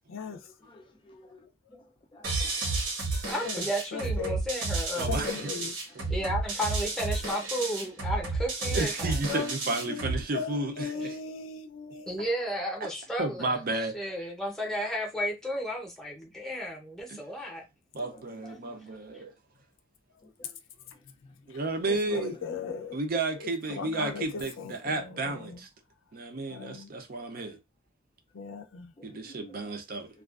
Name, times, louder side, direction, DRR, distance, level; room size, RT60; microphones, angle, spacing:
voice 1, 0.7-1.4 1.7-1.8 2.1-2.8 9.7-9.9 18.0-18.8 22.6-22.7 27.2-27.5 29.0-29.7, left 1 dB, 25° left, 0.4 m, -52 dB
sound 1, 2.2-10.2, right 3 dB, 80° right, 1.1 m, -31 dB
voice 2, 3.3-5.4 6.1-9.2 10.9-11.0 12.1-17.6 19.1-19.2, equal, ahead, 0.7 m, -33 dB
voice 3, 3.9-4.4 5.1-5.7 9.3-9.5 9.9-10.0 10.3-12.2 21.9-23.0 23.7-25.6 26.5-26.9 28.3-28.9, left 5 dB, 85° left, 0.5 m, -37 dB
voice 4, 5.0-5.5 5.9-6.0 8.7-11.2 13.2-14.0 17.1-17.2 17.9-19.3 21.5-22.4 22.9-25.7 26.1-27.6 29.0-30.1, right 2 dB, 50° right, 0.5 m, -32 dB
2.3 x 2.3 x 2.3 m
head